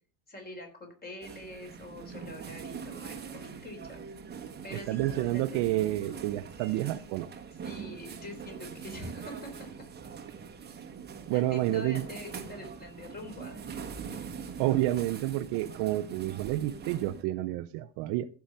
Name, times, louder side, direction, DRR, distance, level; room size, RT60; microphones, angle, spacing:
voice 1, 0.3-4.0 4.6-6.2 7.6-9.7 11.3-13.6, left 1 dB, 20° left, 3.7 m, -45 dB
sound 1, 1.2-17.2, right 6 dB, 20° right, 1.3 m, -43 dB
voice 2, 4.7-7.3 11.3-12.0 14.6-18.3, right 15 dB, 55° right, 0.6 m, -29 dB
14.5 x 5.9 x 5.1 m
cardioid pair, 155°, 50 cm